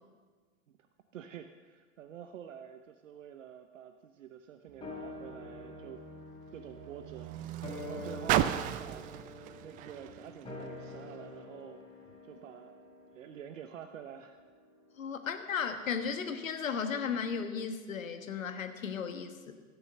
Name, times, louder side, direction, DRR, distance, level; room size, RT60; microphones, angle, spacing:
voice 1, 1.1-6.0 6.5-9.1 9.4-11.8 12.2-12.7 13.1-14.4, right 9 dB, 70° right, 8 dB, 0.8 m, -48 dB
Car, 4.7-11.3 12.1-12.2, right 11 dB, 20° right, 0.3 m, -37 dB
sound 1, 4.8-15.4 15.7-15.8, left 2 dB, 15° left, 3.9 m, -47 dB
voice 2, 15.0-19.5, left 6 dB, 75° left, 8 dB, 1.4 m, -35 dB
15.5 x 7.0 x 6.6 m, 1.4 s
figure-of-eight pair, 90°, 40 cm